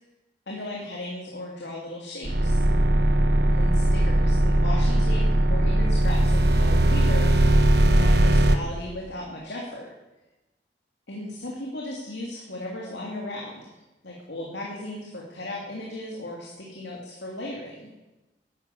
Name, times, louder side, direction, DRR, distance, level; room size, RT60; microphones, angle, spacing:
voice 1, 0.5-2.6 3.5-7.3 7.6-9.9 11.1-13.7 14.0-17.9, left 1 dB, 80° left, -2 dB, 3.0 m, -36 dB
sound 1, 2.2-8.6, right 1 dB, 65° right, 1.3 m, -19 dB
13.0 x 11.5 x 8.6 m, 1.1 s
head